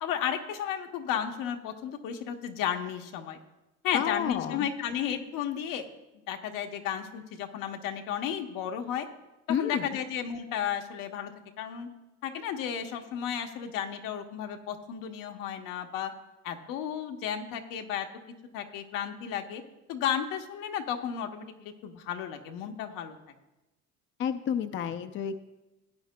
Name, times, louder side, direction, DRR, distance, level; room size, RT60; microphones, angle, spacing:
voice 1, 0.0-3.4 3.8-5.8 6.3-9.1 9.6-11.3 11.6-11.9 12.2-16.1 16.4-18.1 18.5-19.6 19.9-23.2, left 9 dB, 85° left, 5 dB, 1.0 m, -33 dB
voice 2, 3.9-4.7 9.5-10.0 24.2-25.4, left 8 dB, 40° left, 9 dB, 0.5 m, -30 dB
16.0 x 9.1 x 2.2 m, 1.0 s
cardioid pair, 115°, 32 cm